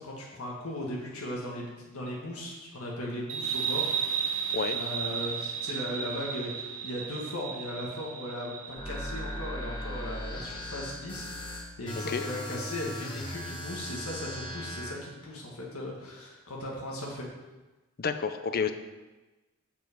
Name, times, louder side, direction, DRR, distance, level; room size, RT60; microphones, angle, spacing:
voice 1, 0.0-3.9 4.7-17.3, left 1 dB, 90° left, -3 dB, 1.6 m, -37 dB
sound 1, 3.3-10.5, right 7 dB, 70° right, 0.8 m, -34 dB
sound 2, 8.8-15.0, left 1 dB, 20° left, 1.2 m, -38 dB
voice 2, 18.0-18.7, left 6 dB, 45° left, 9 dB, 0.5 m, -29 dB
7.3 x 5.8 x 5.0 m, 1.2 s
head